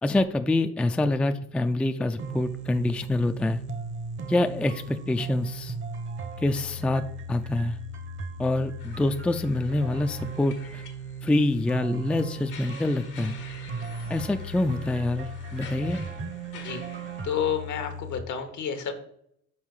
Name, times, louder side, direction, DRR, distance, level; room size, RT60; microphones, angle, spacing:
voice 1, 0.0-3.6 4.3-5.7 6.4-7.0 7.3-7.8 8.4-10.8 11.2-13.4 14.1-16.0, left 2 dB, 5° left, 8 dB, 0.3 m, -26 dB
sound 1, 2.2-18.2, right 2 dB, 40° right, 0.8 m, -37 dB
sound 2, 8.8-17.3, left 5 dB, 90° left, 1.5 m, -48 dB
voice 2, 16.5-16.8 17.2-18.9, left 8 dB, 75° left, 7 dB, 1.1 m, -30 dB
5.6 x 4.3 x 4.8 m, 0.70 s
cardioid pair, 90°, 30 cm